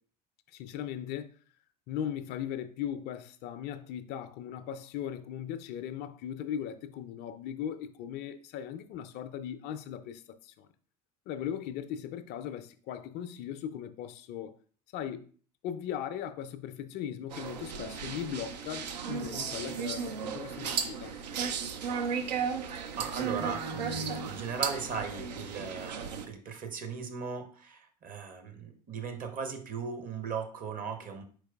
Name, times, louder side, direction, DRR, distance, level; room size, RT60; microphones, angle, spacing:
voice 1, 0.5-1.3 1.9-10.7 11.3-14.6 14.9-15.3 15.6-21.2, left 9 dB, 50° left, 0.4 m, -38 dB
sound 1, 17.3-26.3, right 6 dB, 80° right, 0.5 m, -35 dB
sound 2, 17.6-24.3, right 1 dB, 60° right, 1.2 m, -46 dB
voice 2, 22.6-31.2, right 5 dB, 40° right, 0.9 m, -38 dB
4.6 x 4.5 x 2.2 m
hypercardioid pair, 70°, 21 cm